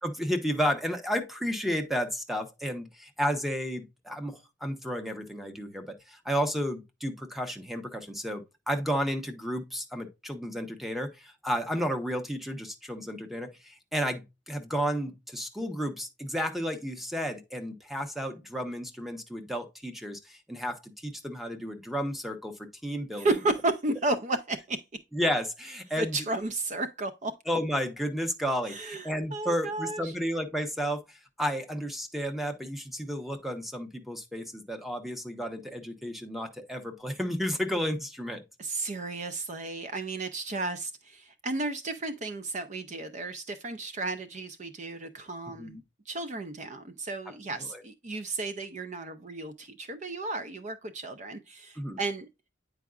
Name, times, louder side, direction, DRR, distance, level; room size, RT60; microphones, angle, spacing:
voice 1, 0.0-23.3 25.1-26.2 27.5-38.4 45.5-45.8 47.6-47.8 51.8-52.0, equal, ahead, 0.9 m, -32 dB
voice 2, 23.1-24.8 26.0-27.3 28.7-30.1 38.6-45.8 46.1-52.3, right 2 dB, 40° right, 0.5 m, -33 dB
9.1 x 4.7 x 2.4 m
head